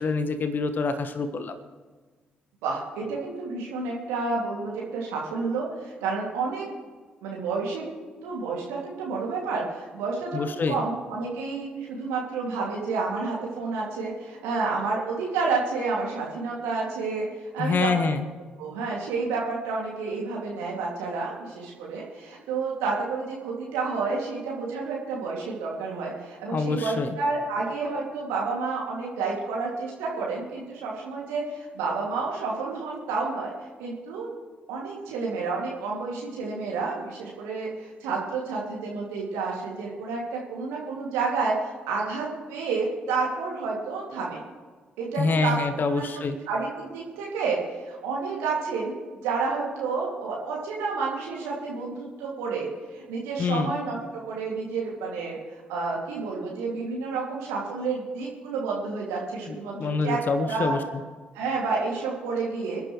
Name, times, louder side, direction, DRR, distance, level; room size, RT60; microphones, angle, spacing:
voice 1, 0.0-1.6 10.3-10.8 17.6-18.2 26.5-27.2 45.2-46.4 53.4-53.7 59.5-60.8, left 4 dB, 45° left, 9 dB, 1.1 m, -26 dB
voice 2, 2.6-6.7 7.2-7.9 8.2-17.3 17.5-17.9 18.6-33.5 33.8-34.3 34.7-44.4 45.0-47.6 47.9-49.0 49.2-52.7 52.9-55.4 55.7-60.7 61.3-62.8, right 4 dB, 70° right, -3 dB, 2.4 m, -30 dB
26.0 x 10.5 x 3.2 m, 1.4 s
figure-of-eight pair, 40°, 5 cm